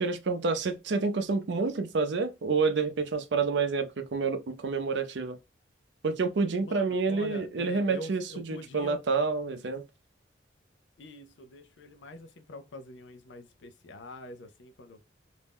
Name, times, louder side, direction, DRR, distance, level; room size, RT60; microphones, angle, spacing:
voice 1, 0.0-5.4 6.0-9.8, right 4 dB, 75° right, 0.5 m, -28 dB
voice 2, 6.6-9.0 11.0-15.0, left 1 dB, 85° left, 0.5 m, -45 dB
2.5 x 2.1 x 3.4 m
head